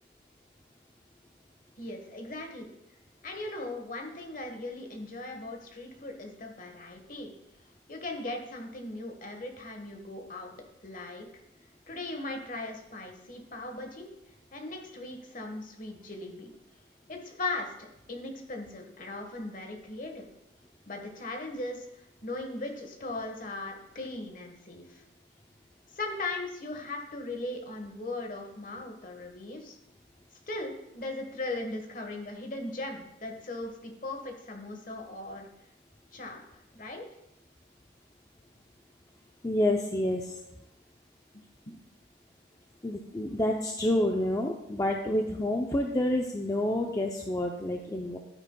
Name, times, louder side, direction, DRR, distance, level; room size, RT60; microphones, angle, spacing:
voice 1, 1.8-2.8 3.2-7.3 7.9-10.5 10.8-11.2 11.9-14.1 14.5-16.5 17.1-20.3 20.9-25.0 25.9-29.8 30.5-35.5 36.1-37.1 41.3-41.4, left 2 dB, 40° left, 3 dB, 1.3 m, -38 dB
voice 2, 39.4-40.3 42.8-48.2, left 1 dB, 15° left, 1 dB, 0.5 m, -28 dB
12.0 x 9.4 x 2.3 m, 0.85 s
head